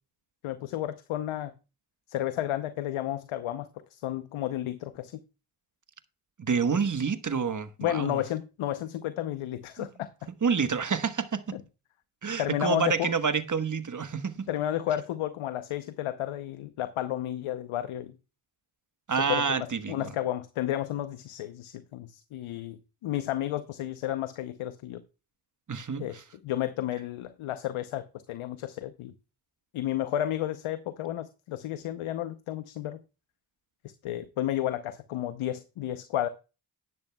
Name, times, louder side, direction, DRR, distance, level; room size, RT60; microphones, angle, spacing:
voice 1, 0.4-1.5 2.1-5.1 7.8-10.1 11.5-11.6 12.4-13.1 14.5-18.1 19.3-25.0 26.0-29.1 29.7-33.0 33.8-36.3, left 12 dB, 85° left, 0.8 m, -32 dB
voice 2, 6.4-8.2 9.8-9.9 10.4-11.6 12.2-14.5 19.1-20.1 25.7-26.2, right 5 dB, 40° right, 1.2 m, -28 dB
12.0 x 10.5 x 2.2 m
supercardioid pair, 45°, 48 cm